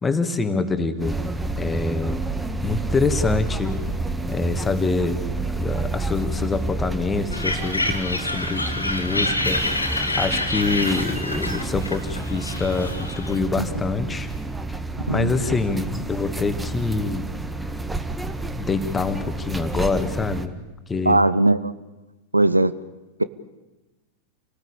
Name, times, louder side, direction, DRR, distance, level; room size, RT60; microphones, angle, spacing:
voice 1, 0.0-1.2 1.6-2.2 2.6-3.8 4.3-14.3 14.7-14.8 15.1-17.3 18.6-20.5 20.9-21.2, left 4 dB, 15° left, 10 dB, 2.2 m, -25 dB
sound 1, 1.0-20.5, right 2 dB, 10° right, 1.7 m, -29 dB
sound 2, 7.3-13.4, left 2 dB, 85° left, 2.4 m, -27 dB
voice 2, 15.1-15.5 21.0-21.7 22.3-22.7, right 2 dB, 85° right, 15 dB, 0.9 m, -19 dB
28.5 x 19.0 x 8.7 m, 1.1 s
figure-of-eight pair, 90°, 0 cm